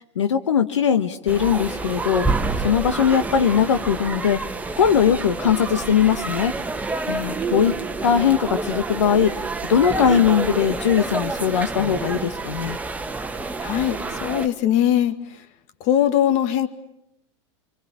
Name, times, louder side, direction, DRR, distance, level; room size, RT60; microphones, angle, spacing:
voice 1, 0.0-4.4 4.8-6.5 7.1-7.8 8.0-9.4 9.7-12.8, left 8 dB, 90° left, 8 dB, 1.2 m, -20 dB
sound 1, 1.3-14.5, right 3 dB, 10° right, 1.4 m, -28 dB
voice 2, 13.6-15.2 15.8-16.7, left 11 dB, 50° left, 11 dB, 2.0 m, -20 dB
26.5 x 24.5 x 8.4 m, 0.83 s
hypercardioid pair, 105°, 15 cm